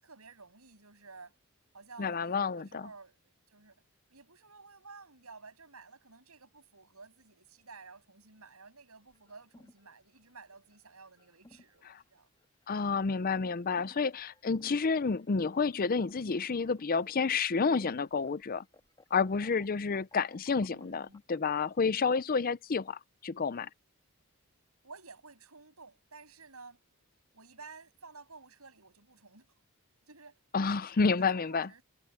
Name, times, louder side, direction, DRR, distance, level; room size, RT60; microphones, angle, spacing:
voice 1, 0.0-1.4 1.7-3.2 3.5-3.8 4.1-12.3 14.4-14.6 20.7-21.2 24.8-26.8 27.3-29.5 30.1-30.4 31.0-31.8, right 4 dB, 80° right, 7.5 m, -53 dB
voice 2, 2.0-2.8 11.9-12.0 12.7-18.6 19.1-23.7 30.5-31.7, left 5 dB, 40° left, 0.5 m, -30 dB
sound 1, 9.1-21.5, left 1 dB, 20° left, 1.8 m, -60 dB
head